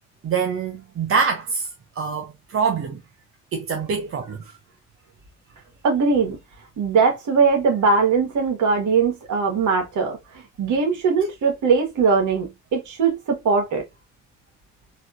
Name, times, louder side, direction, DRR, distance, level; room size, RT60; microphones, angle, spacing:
voice 1, 0.2-1.7 2.0-3.0 3.5-4.4, right 5 dB, 35° right, 0.8 m, -24 dB
voice 2, 5.8-6.4 6.8-13.8, right 5 dB, 50° right, 1.7 m, -20 dB
4.1 x 3.0 x 2.6 m
figure-of-eight pair, 50°, 38 cm